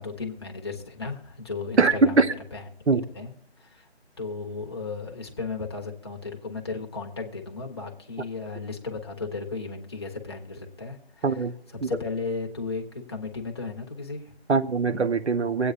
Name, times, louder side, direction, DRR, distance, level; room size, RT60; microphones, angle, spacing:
voice 1, 0.0-2.6 3.1-3.3 3.6-3.9 4.2-11.4 11.8-14.3, left 4 dB, 25° left, 0.9 m, -35 dB
voice 2, 1.8-2.3 2.9-3.0 11.2-11.5 11.8-11.9 14.5-15.7, right 4 dB, 80° right, 0.9 m, -22 dB
24.5 x 8.5 x 2.4 m
figure-of-eight pair, 170°, 33 cm